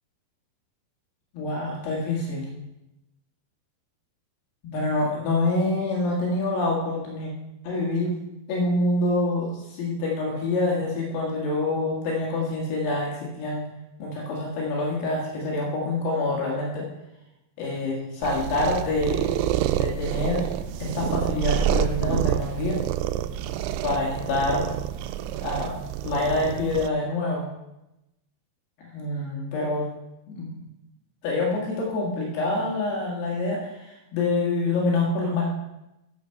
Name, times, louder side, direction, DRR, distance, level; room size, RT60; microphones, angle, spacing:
voice 1, 1.3-2.5 4.6-7.3 7.6-8.2 8.5-13.6 14.0-16.8 17.6-19.3 19.8-20.5 20.8-22.8 23.8-24.7 25.4-25.7 26.0-27.5 28.8-29.9 30.3-30.6 31.2-35.5, left 2 dB, 75° left, -3 dB, 3.7 m, -26 dB
sound 1, 18.2-26.9, right 11 dB, 85° right, 2.6 m, -28 dB
10.0 x 6.9 x 6.4 m, 0.93 s
omnidirectional pair, 4.8 m